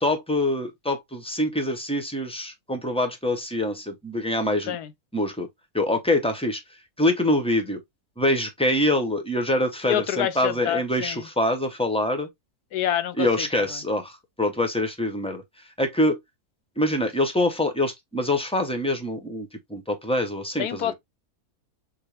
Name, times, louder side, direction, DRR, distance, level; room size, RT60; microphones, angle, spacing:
voice 1, 0.0-4.8 5.1-5.5 5.7-6.6 7.0-7.8 8.2-12.3 13.2-15.4 15.8-16.2 16.8-20.9, left 1 dB, 5° left, 0.7 m, -25 dB
voice 2, 9.8-11.3 12.7-13.7 20.6-20.9, left 11 dB, 80° left, 1.3 m, -27 dB
6.7 x 2.3 x 3.4 m
omnidirectional pair, 1.6 m